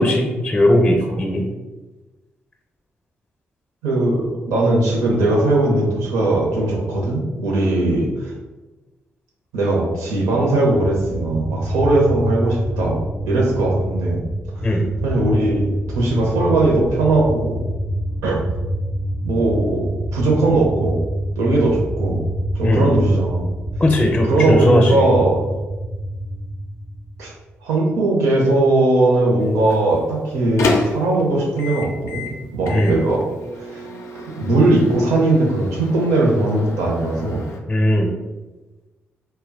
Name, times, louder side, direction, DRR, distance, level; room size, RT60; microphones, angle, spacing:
voice 1, 0.0-1.4 14.6-14.8 22.6-22.9 23.8-25.0 32.7-33.0 37.7-38.1, left 1 dB, 20° left, 1 dB, 0.5 m, -17 dB
voice 2, 3.8-8.3 9.5-14.2 15.0-17.6 18.2-18.4 19.2-21.0 21.4-22.2 22.5-23.4 24.2-25.5 27.2-27.3 27.6-32.3 32.5-33.3 33.7-33.8 34.3-37.4, right 2 dB, 85° right, -2 dB, 0.6 m, -19 dB
sound 1, 10.7-27.5, right 1 dB, 45° right, 0.4 m, -26 dB
Microwave oven, 29.4-37.6, left 3 dB, 70° left, 0.4 m, -30 dB
2.1 x 2.1 x 3.6 m, 1.2 s
supercardioid pair, 45°, 5 cm